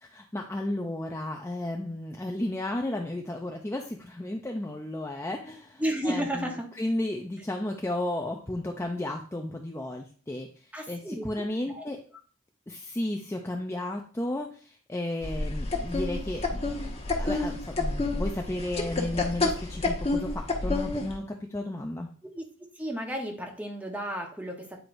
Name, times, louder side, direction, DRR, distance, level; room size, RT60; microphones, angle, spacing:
voice 1, 0.0-6.5 6.8-12.0 12.7-16.9 17.2-21.2 21.5-22.1, left 1 dB, 10° left, 2 dB, 0.4 m, -33 dB
voice 2, 5.8-6.7 10.7-11.8 22.3-22.4 22.7-24.8, equal, 5° right, 2 dB, 1.0 m, -33 dB
sound 1, 15.2-21.2, left 2 dB, 30° left, 1.1 m, -29 dB
9.3 x 4.6 x 2.6 m, 0.42 s
head